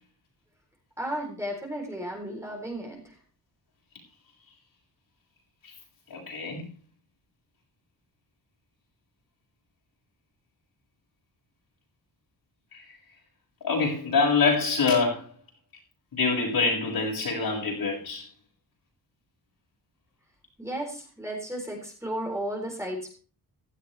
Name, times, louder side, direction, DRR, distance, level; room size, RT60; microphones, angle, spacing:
voice 1, 1.0-3.0 20.6-23.1, right 1 dB, 5° right, 3.8 m, -34 dB
voice 2, 6.1-6.7 12.7-12.9 13.6-15.3 16.1-18.3, left 4 dB, 65° left, 7.5 m, -25 dB
16.0 x 13.0 x 3.4 m
wide cardioid pair, 150°, 38 cm